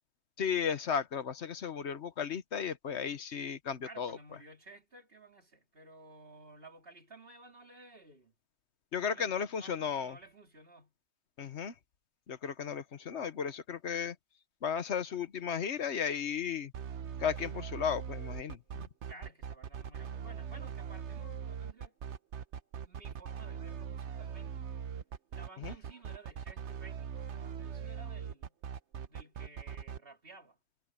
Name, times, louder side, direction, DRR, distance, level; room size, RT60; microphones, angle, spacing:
voice 1, 0.4-4.1 8.9-10.1 11.4-11.7 12.3-14.1 14.6-16.7 17.2-18.9 25.6-25.7, left 7 dB, 80° left, 1.3 m, -35 dB
voice 2, 3.8-8.3 9.0-10.9 19.0-21.9 22.8-24.7 25.3-28.6 29.1-30.6, right 3 dB, 55° right, 3.1 m, -54 dB
sound 1, 16.7-30.0, right 7 dB, 85° right, 1.1 m, -41 dB
omnidirectional pair, 1.1 m